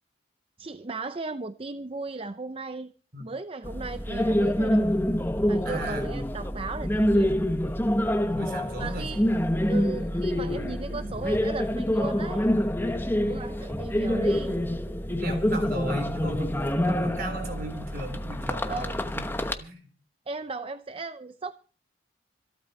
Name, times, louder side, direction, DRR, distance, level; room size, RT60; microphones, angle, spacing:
voice 1, 0.6-2.9 3.2-5.0 5.5-7.4 8.8-9.2 9.7-12.5 13.2-14.6 18.7-19.0 20.3-21.5, right 3 dB, 30° right, 0.6 m, -36 dB
sound 1, 3.6-19.5, equal, 10° left, 1.1 m, -26 dB
voice 2, 5.7-6.2 8.3-9.2 11.0-11.1 15.2-18.9 19.1-19.3 19.6-19.9, right 1 dB, 50° right, 3.8 m, -37 dB
26.0 x 8.9 x 4.3 m
head